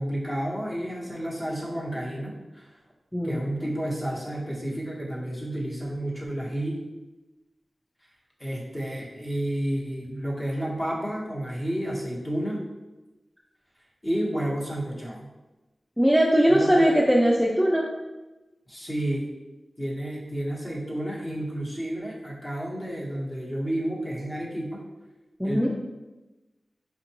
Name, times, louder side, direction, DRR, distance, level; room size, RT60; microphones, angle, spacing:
voice 1, 0.0-2.7 3.2-6.8 8.4-12.6 14.0-15.3 16.5-16.9 18.7-19.3 19.8-24.8 25.4-25.7, right 1 dB, 30° left, -5 dB, 1.1 m, -31 dB
voice 2, 16.0-17.9 25.4-25.7, equal, ahead, -2 dB, 0.4 m, -20 dB
4.5 x 2.5 x 2.9 m, 1.1 s
wide cardioid pair, 55°, 0 cm